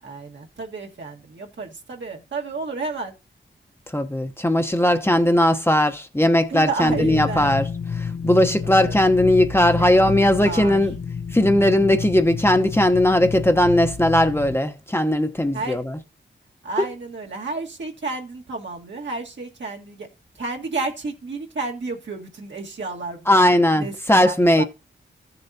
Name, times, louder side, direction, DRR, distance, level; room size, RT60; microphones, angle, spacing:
voice 1, 0.0-3.1 6.5-7.5 8.6-9.0 9.8-10.8 15.5-15.8 16.6-20.1 20.4-23.3 23.7-24.6, right 3 dB, 65° right, 1.8 m, -31 dB
voice 2, 3.9-7.7 8.0-10.9 11.3-16.0 16.8-16.9 23.3-24.6, left 1 dB, 10° left, 0.9 m, -18 dB
sound 1, 6.9-14.6, left 6 dB, 60° left, 0.8 m, -30 dB
14.0 x 6.8 x 2.8 m
cardioid pair, 50°, 20 cm